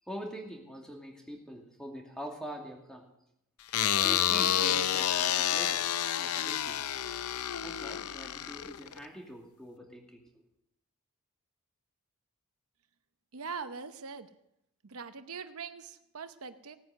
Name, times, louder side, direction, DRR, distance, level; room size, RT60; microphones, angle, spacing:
voice 1, 0.1-3.1 4.0-5.8 6.1-6.8 7.6-10.4, equal, 5° left, 0 dB, 2.4 m, -44 dB
sound 1, 3.7-9.0, left 10 dB, 85° left, 0.6 m, -29 dB
voice 2, 13.3-14.3 14.8-16.8, right 5 dB, 75° right, 10 dB, 0.8 m, -42 dB
17.5 x 9.4 x 6.6 m, 0.81 s
head